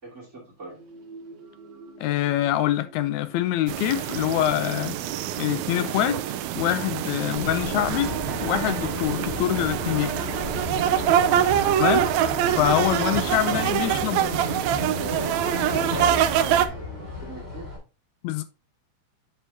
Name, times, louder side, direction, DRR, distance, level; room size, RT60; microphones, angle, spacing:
voice 1, 0.0-0.8 11.2-11.5 13.1-14.4 15.0-17.8, right 3 dB, 25° right, 2.7 m, -40 dB
sound 1, 0.7-5.9 6.7-13.8, right 4 dB, 60° right, 2.5 m, -45 dB
voice 2, 2.0-5.0 5.4-6.2 6.6-8.1 8.4-10.1 11.8-12.1 12.6-14.3 18.2-18.4, left 13 dB, 80° left, 1.9 m, -25 dB
sound 2, 3.7-16.7, right 10 dB, 80° right, 1.9 m, -25 dB
sound 3, 7.3-17.8, left 2 dB, 20° left, 2.6 m, -33 dB
7.6 x 6.8 x 2.8 m
omnidirectional pair, 3.4 m